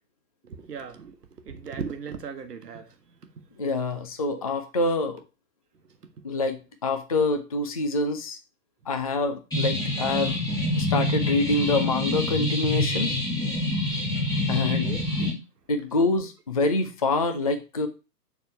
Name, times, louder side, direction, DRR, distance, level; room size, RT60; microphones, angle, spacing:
voice 1, 0.7-1.1 1.5-2.8 14.6-15.1, right 6 dB, 75° right, 8 dB, 1.2 m, -36 dB
voice 2, 3.6-5.2 6.2-8.4 8.9-10.4 10.8-13.1 14.5-14.9 15.2-15.3 15.7-17.9, left 3 dB, 25° left, 8 dB, 0.4 m, -26 dB
sound 1, 9.5-15.3, left 1 dB, 10° left, 1.5 m, -26 dB
7.2 x 3.6 x 5.7 m, 0.30 s
figure-of-eight pair, 125°, 48 cm